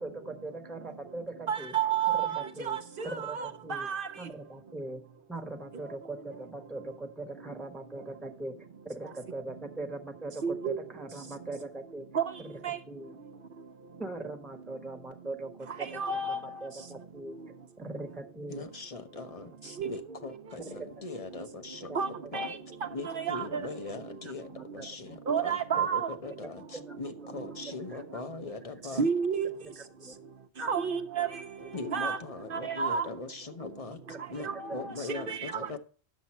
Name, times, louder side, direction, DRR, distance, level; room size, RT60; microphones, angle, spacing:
voice 1, 0.0-1.7 2.1-2.8 3.0-3.9 4.2-5.0 5.3-8.5 8.8-12.1 12.4-12.6 12.9-13.2 14.0-17.3 17.8-18.6 19.6-20.0 20.6-20.9 21.8-22.0 23.5-23.6 24.4-24.9 25.2-25.4 26.7-26.9 27.9-28.4 29.8-30.2 30.6-30.7 33.6-33.7 34.1-34.2, right 2 dB, ahead, 1.0 m, -41 dB
voice 2, 1.5-4.3 5.7-5.8 9.0-9.1 10.4-10.9 12.1-12.8 15.7-16.7 19.6-20.2 21.9-23.9 25.3-26.2 27.4-27.6 28.9-29.6 30.7-32.2 32.5-33.1 34.1-35.7, right 6 dB, 60° right, 0.8 m, -32 dB
voice 3, 18.5-21.9 22.3-22.5 22.9-29.0 31.7-34.0 34.3-35.8, left 3 dB, 35° left, 0.9 m, -41 dB
9.4 x 6.9 x 4.2 m
omnidirectional pair, 1.1 m